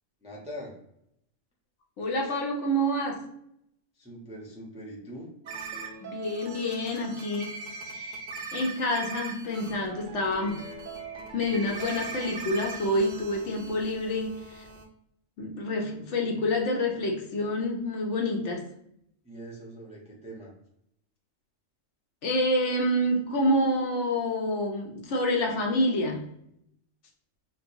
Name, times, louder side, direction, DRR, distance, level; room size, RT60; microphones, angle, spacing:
voice 1, 0.2-0.8 3.9-5.3 19.2-20.5, equal, 5° right, -4 dB, 0.5 m, -42 dB
voice 2, 2.0-3.2 6.0-7.5 7.9-8.2 8.5-10.6 11.3-14.7 15.4-18.6 22.2-26.3, left 1 dB, 65° left, 1 dB, 0.9 m, -28 dB
sound 1, 5.4-14.8, right 4 dB, 60° right, 0.5 m, -40 dB
4.1 x 2.3 x 2.6 m, 0.75 s
omnidirectional pair, 1.4 m